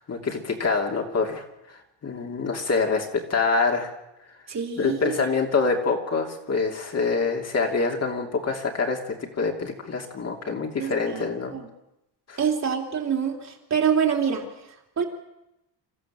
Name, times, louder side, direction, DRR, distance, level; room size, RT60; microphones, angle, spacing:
voice 1, 0.0-3.9 4.8-11.5 12.3-12.4, left 4 dB, 35° left, 2 dB, 3.0 m, -26 dB
voice 2, 4.5-5.2 10.8-11.7 12.4-14.5 15.0-15.1, right 7 dB, 40° right, 1 dB, 3.3 m, -26 dB
26.0 x 15.0 x 7.6 m, 0.89 s
cardioid pair, 150°, 43 cm